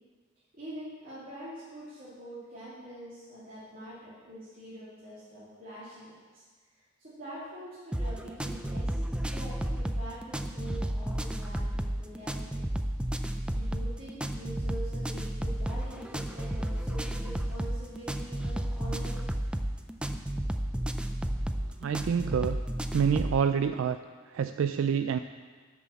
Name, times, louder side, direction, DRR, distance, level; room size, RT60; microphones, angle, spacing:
voice 1, 0.5-6.4 7.0-11.7 12.0-12.6 13.2-19.2, right 1 dB, 45° right, -11 dB, 2.8 m, -45 dB
sound 1, 7.9-23.4, right 1 dB, 5° right, 0.4 m, -32 dB
voice 2, 21.8-22.6 22.9-24.0 24.3-25.2, right 7 dB, 80° right, 9 dB, 0.3 m, -27 dB
11.0 x 6.1 x 6.9 m, 1.4 s
head